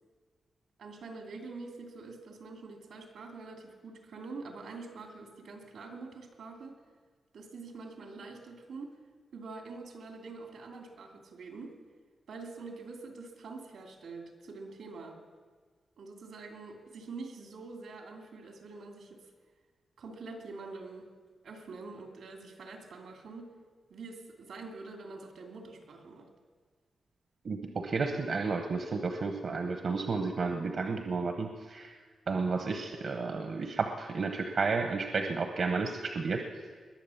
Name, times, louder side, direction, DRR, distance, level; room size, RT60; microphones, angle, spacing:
voice 1, 0.8-6.8 7.3-9.0 9.3-11.7 12.3-15.2 16.0-19.2 20.0-21.1 21.4-23.5 23.9-26.3, right 3 dB, 85° right, 3 dB, 2.5 m, -45 dB
voice 2, 27.4-31.9 32.3-36.4, right 4 dB, 60° right, 5 dB, 1.0 m, -32 dB
21.0 x 7.6 x 7.1 m, 1.5 s
wide cardioid pair, 110°, 0 cm